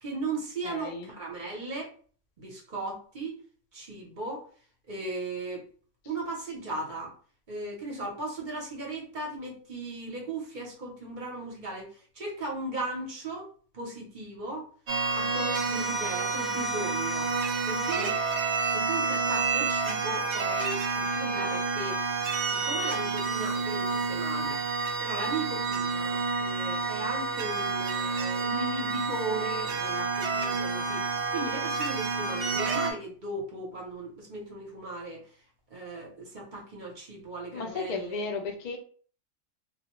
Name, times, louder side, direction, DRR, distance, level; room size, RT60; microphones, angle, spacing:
voice 1, 0.0-1.9 2.4-3.3 3.7-4.4 4.9-5.6 6.0-7.1 7.5-13.5 13.7-14.6 15.2-17.3 17.6-18.2 18.7-22.0 22.4-24.7 25.0-35.2 35.7-38.2, right 2 dB, 45° right, -2 dB, 0.7 m, -37 dB
voice 2, 0.6-1.1 17.8-18.2 37.5-38.8, left 4 dB, 80° left, 3 dB, 0.3 m, -35 dB
sound 1, 14.9-32.9, right 4 dB, 70° right, 0.4 m, -29 dB
2.3 x 2.1 x 2.9 m, 0.43 s
omnidirectional pair, 1.4 m